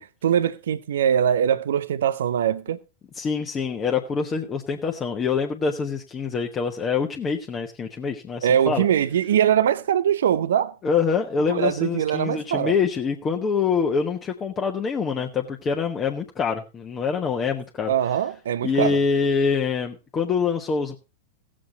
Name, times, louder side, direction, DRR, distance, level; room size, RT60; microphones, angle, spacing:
voice 1, 0.0-2.8 8.4-10.7 11.5-12.7 17.9-19.0, right 9 dB, 65° right, 0.7 m, -22 dB
voice 2, 3.2-8.8 10.8-17.9 18.6-21.0, left 5 dB, 20° left, 1.2 m, -25 dB
17.0 x 7.6 x 4.0 m
figure-of-eight pair, 95°, 0 cm